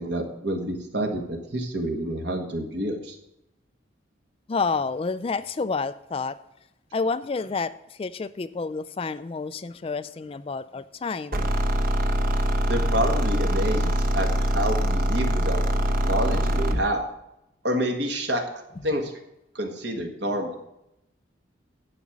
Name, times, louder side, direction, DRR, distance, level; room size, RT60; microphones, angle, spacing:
voice 1, 0.0-3.1 12.7-15.6 16.0-17.0 17.6-18.4 18.8-19.1 19.5-20.5, right 1 dB, 60° right, 4 dB, 1.8 m, -28 dB
voice 2, 4.5-6.4 6.9-11.4, left 4 dB, 30° left, 14 dB, 0.3 m, -29 dB
sound 1, 11.3-16.9, equal, 45° right, 1.1 m, -23 dB
11.0 x 5.2 x 7.3 m, 0.85 s
head